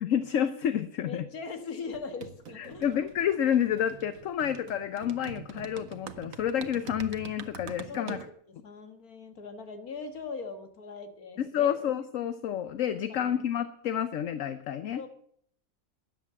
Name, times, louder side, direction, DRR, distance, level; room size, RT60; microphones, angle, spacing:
voice 1, 0.0-1.3 2.6-8.2 11.4-15.0, left 9 dB, 65° left, 12 dB, 1.1 m, -29 dB
voice 2, 1.1-2.9 7.9-8.2 8.5-11.8 13.1-13.4 15.0-15.1, left 4 dB, 85° left, 8 dB, 2.1 m, -40 dB
sound 1, 1.9-8.3, right 7 dB, 70° right, 1.4 m, -45 dB
13.0 x 10.0 x 7.5 m, 0.66 s
omnidirectional pair, 1.5 m